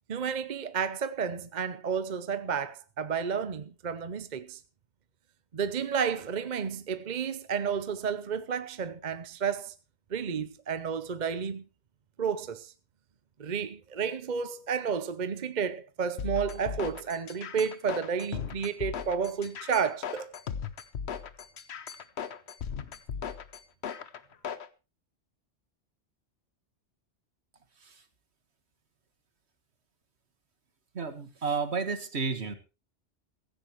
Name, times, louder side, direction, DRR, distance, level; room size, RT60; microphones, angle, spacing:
voice 1, 0.1-4.6 5.5-9.7 10.1-11.6 12.2-12.7 13.4-20.3, right 6 dB, 45° right, 0.8 m, -31 dB
sound 1, 16.2-24.7, left 7 dB, 70° left, 1.2 m, -37 dB
voice 2, 30.9-32.5, right 5 dB, 70° right, 1.9 m, -32 dB
16.0 x 15.0 x 3.1 m
omnidirectional pair, 1.2 m